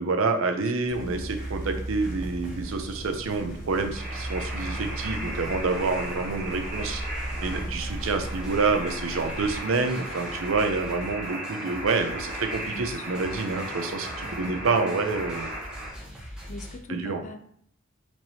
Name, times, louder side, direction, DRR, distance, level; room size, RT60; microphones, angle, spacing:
voice 1, 0.0-15.5 16.9-17.2, right 4 dB, 85° right, 6 dB, 0.6 m, -28 dB
sound 1, 0.9-9.6, right 1 dB, 65° left, 1.4 m, -36 dB
voice 2, 0.9-1.3 1.6-1.8 10.3-10.5 12.7-13.4 14.2-14.8 16.2-17.4, left 2 dB, 35° left, 6 dB, 0.4 m, -43 dB
sound 2, 1.4-2.8 3.3-16.8, equal, 5° right, 0.8 m, -43 dB
sound 3, 3.9-15.9, right 1 dB, 45° right, 1.1 m, -36 dB
4.5 x 3.0 x 2.7 m, 0.64 s
head